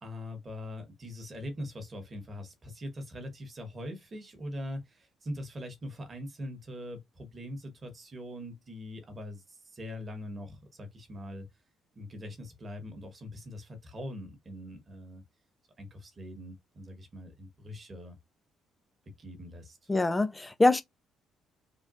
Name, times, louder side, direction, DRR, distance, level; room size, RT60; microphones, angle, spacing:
voice 1, 0.0-11.5 11.9-15.2 15.8-18.2 19.2-19.8, left 1 dB, 25° right, 1.0 m, -42 dB
voice 2, 19.9-20.8, left 2 dB, 10° left, 0.3 m, -24 dB
3.6 x 2.3 x 2.4 m
cardioid pair, 160°, 0 cm